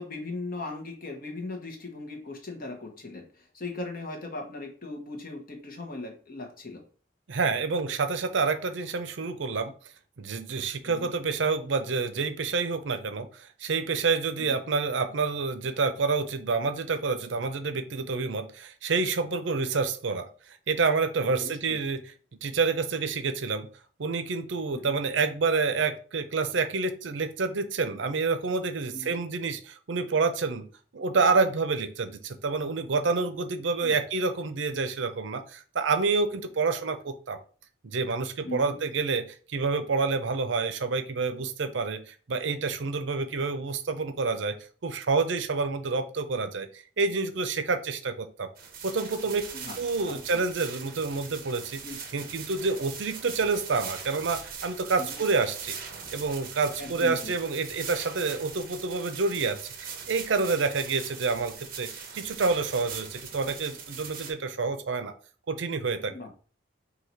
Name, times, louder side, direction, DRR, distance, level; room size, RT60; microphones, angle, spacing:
voice 1, 0.0-6.8 10.8-11.1 14.4-14.6 21.4-21.8 24.7-25.0 28.9-29.2 33.8-34.0 38.4-38.8 49.5-49.8 50.1-50.4 51.8-52.0 55.0-55.2 56.8-57.3 66.1-66.3, left 2 dB, 50° left, 2 dB, 1.2 m, -38 dB
voice 2, 7.3-9.7 10.2-22.1 22.4-23.7 24.0-30.7 30.9-37.4 37.8-44.6 44.8-48.5 48.8-49.5 49.8-51.8 52.1-55.8 56.1-65.1 65.5-66.1, right 4 dB, 75° right, 10 dB, 0.6 m, -28 dB
sound 1, 48.6-64.3, right 6 dB, 50° right, 0.9 m, -41 dB
4.0 x 2.8 x 4.5 m, 0.40 s
head